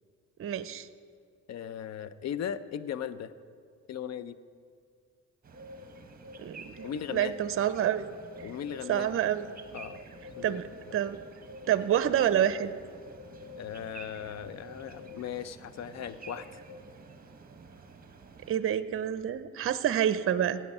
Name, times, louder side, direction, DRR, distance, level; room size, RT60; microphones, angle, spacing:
voice 1, 0.4-0.9 6.4-8.1 8.9-9.5 10.4-10.6 10.9-11.2 11.7-12.7 18.5-20.6, right 10 dB, 45° right, 14 dB, 0.6 m, -28 dB
voice 2, 1.5-3.3 3.9-4.4 6.8-7.3 8.4-9.1 9.7-10.0 10.4-10.6 13.6-16.5, left 9 dB, 60° left, 15 dB, 0.7 m, -37 dB
sound 1, 5.4-18.5, right 1 dB, 30° right, 1.2 m, -48 dB
16.5 x 8.5 x 5.5 m, 2.2 s
cardioid pair, 90°, 30 cm